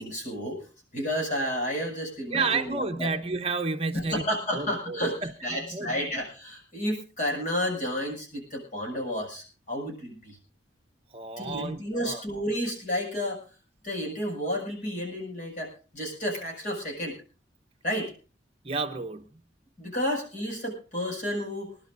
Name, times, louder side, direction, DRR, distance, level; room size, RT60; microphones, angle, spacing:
voice 1, 0.0-3.1 3.9-10.4 11.4-13.4 13.8-17.2 17.8-18.1 19.8-21.7, equal, 45° left, 7.1 m, -31 dB
voice 2, 2.3-4.2 4.5-6.1 11.1-12.2 18.6-19.3, right 4 dB, 30° right, 1.1 m, -31 dB
26.5 x 11.5 x 2.7 m
head